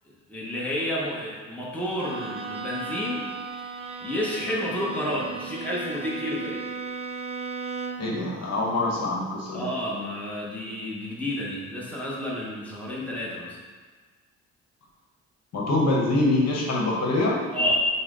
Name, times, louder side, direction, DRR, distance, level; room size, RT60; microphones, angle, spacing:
voice 1, 0.3-3.3 4.0-6.6 9.5-13.6 17.5-17.7, left 1 dB, 5° left, -5 dB, 0.9 m, -30 dB
Bowed string instrument, 2.0-8.2, right 5 dB, 20° right, 0.4 m, -36 dB
voice 2, 8.0-9.6 15.5-17.4, left 2 dB, 60° left, -2 dB, 1.0 m, -24 dB
5.4 x 2.1 x 3.8 m, 1.5 s
cardioid pair, 90°, 30 cm